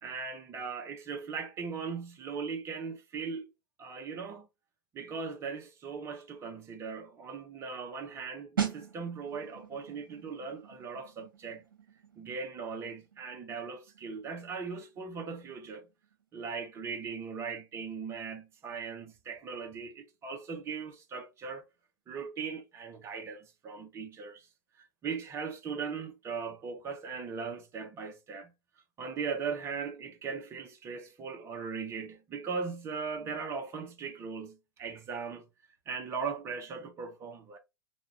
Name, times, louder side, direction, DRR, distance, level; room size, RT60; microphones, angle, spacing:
voice 1, 0.0-3.5 3.8-4.5 4.9-11.6 12.2-15.8 16.3-21.6 22.1-24.4 25.0-28.5 29.0-35.5 35.9-37.6, right 5 dB, 25° right, 0.7 m, -39 dB
sound 1, 8.6-19.1 19.3-19.6, right 8 dB, 75° right, 0.8 m, -42 dB
2.9 x 2.3 x 2.7 m
figure-of-eight pair, 95°, 11 cm